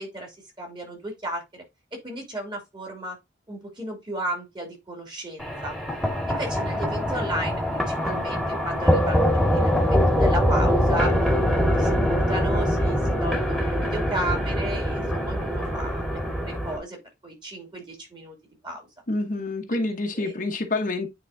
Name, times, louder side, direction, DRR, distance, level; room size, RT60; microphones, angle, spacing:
voice 1, 0.0-1.6 1.9-3.2 3.5-5.7 6.3-9.2 9.5-18.4 18.6-18.9 19.7-19.8 20.1-20.3, right 1 dB, 25° right, 2.6 m, -34 dB
sound 1, 5.4-16.8, equal, ahead, 1.7 m, -23 dB
voice 2, 19.1-21.1, left 2 dB, 45° left, 1.0 m, -27 dB
9.3 x 3.9 x 2.6 m
head